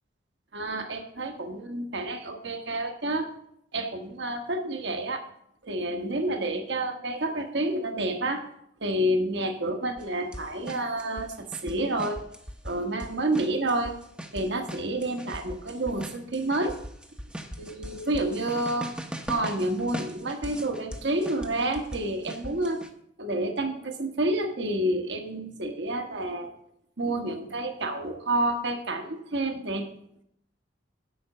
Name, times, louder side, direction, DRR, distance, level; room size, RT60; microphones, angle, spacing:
voice 1, 0.5-3.3 3.7-5.2 5.6-8.4 8.8-12.2 12.6-13.9 14.3-16.8 17.6-18.9 19.3-22.8 23.2-26.5 27.0-29.9, right 1 dB, 65° right, 5 dB, 1.3 m, -29 dB
sound 1, 10.0-10.1 10.3-12.7 13.0-22.9, right 1 dB, 5° right, 0.7 m, -40 dB
7.8 x 5.9 x 7.7 m, 0.72 s
head